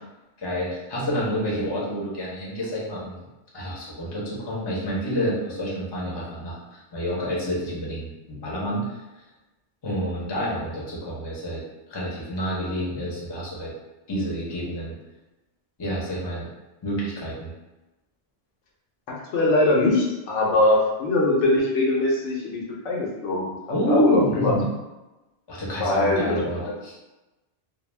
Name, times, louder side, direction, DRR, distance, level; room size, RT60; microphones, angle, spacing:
voice 1, 0.4-3.1 3.5-8.8 9.8-11.6 11.9-13.7 14.1-14.9 15.8-16.5 16.8-17.5 23.7-24.7 25.5-26.9, equal, 30° left, -5 dB, 0.6 m, -28 dB
voice 2, 19.1-23.6 23.9-24.5 25.8-26.4 26.6-26.7, left 2 dB, 85° left, -2 dB, 1.0 m, -22 dB
2.3 x 2.0 x 3.1 m, 1.0 s
omnidirectional pair, 1.2 m